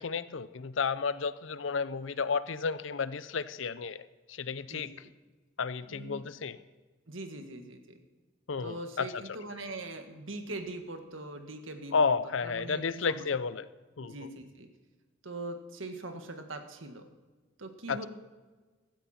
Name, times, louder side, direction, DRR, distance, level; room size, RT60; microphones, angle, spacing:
voice 1, 0.0-4.9 5.6-6.6 8.5-9.2 11.9-13.7 14.0-14.3 17.9-18.1, left 5 dB, 75° left, 15 dB, 0.6 m, -32 dB
voice 2, 4.7-5.1 5.8-6.3 7.1-8.0 8.6-12.1 12.4-13.2 14.0-14.7 15.2-17.0 17.6-18.1, right 2 dB, 80° right, 6 dB, 1.7 m, -42 dB
16.0 x 13.0 x 4.3 m, 1.3 s
head